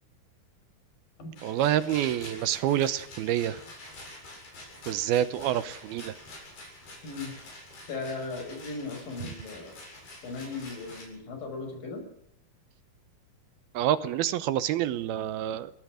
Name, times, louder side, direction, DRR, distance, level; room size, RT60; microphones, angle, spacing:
Rattle, 1.4-11.1, left 2 dB, 75° left, 9.7 m, -47 dB
voice 1, 1.4-3.6 4.9-6.1 13.8-15.7, right 11 dB, 75° right, 14 dB, 2.7 m, -27 dB
voice 2, 7.0-7.3 7.9-9.7 10.2-12.0, left 3 dB, 60° left, 5 dB, 7.7 m, -37 dB
23.0 x 18.5 x 6.4 m, 0.72 s
omnidirectional pair, 4.6 m